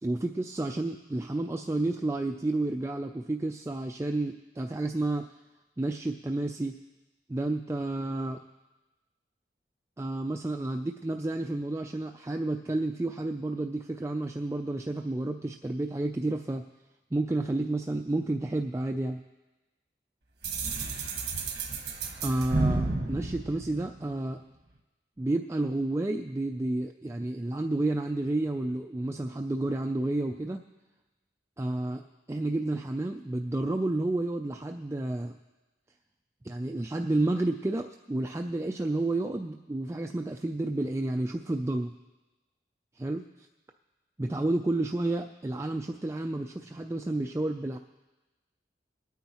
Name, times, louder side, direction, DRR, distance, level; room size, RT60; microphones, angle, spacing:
voice 1, 0.0-5.3 5.8-6.7 7.3-8.4 10.0-16.6 17.1-19.2 22.2-24.4 25.2-30.6 31.6-32.0 32.3-35.4 36.4-41.9 43.0-43.5 44.2-47.8, right 2 dB, 15° right, 4 dB, 0.3 m, -30 dB
sound 1, 20.4-24.3, right 3 dB, 65° right, 1.4 m, -31 dB
22.5 x 9.3 x 3.0 m, 1.1 s
head